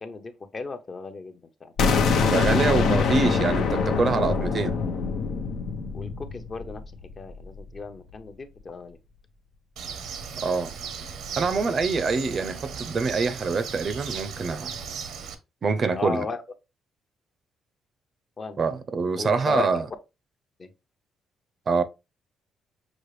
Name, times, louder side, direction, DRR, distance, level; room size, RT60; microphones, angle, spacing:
voice 1, 0.0-1.7 5.9-6.8 7.2-9.0 15.9-16.4 18.4-18.6 19.2-19.7 20.6-20.7, left 4 dB, 40° left, 0.7 m, -35 dB
sound 1, 1.8-7.6, left 5 dB, 80° left, 0.7 m, -24 dB
voice 2, 2.3-4.8 10.4-10.7 11.4-14.7 15.6-16.3 18.6-19.8 21.7-21.8, right 4 dB, 45° right, 0.5 m, -25 dB
Bird, 9.8-15.3, right 6 dB, 80° right, 0.7 m, -37 dB
6.1 x 2.4 x 3.2 m
cardioid pair, 90°, 0 cm